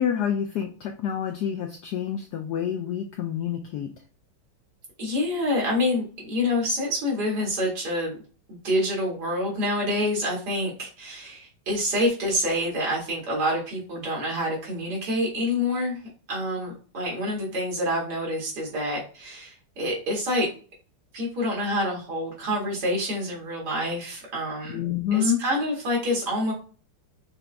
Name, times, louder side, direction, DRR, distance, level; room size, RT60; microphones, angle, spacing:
voice 1, 0.0-3.9 24.7-25.4, left 9 dB, 90° left, 4 dB, 0.8 m, -27 dB
voice 2, 5.0-8.2 8.5-16.0 16.3-20.5 21.1-24.8 25.1-26.5, left 1 dB, 50° right, -3 dB, 2.5 m, -27 dB
6.1 x 2.5 x 3.4 m, 0.38 s
omnidirectional pair, 2.3 m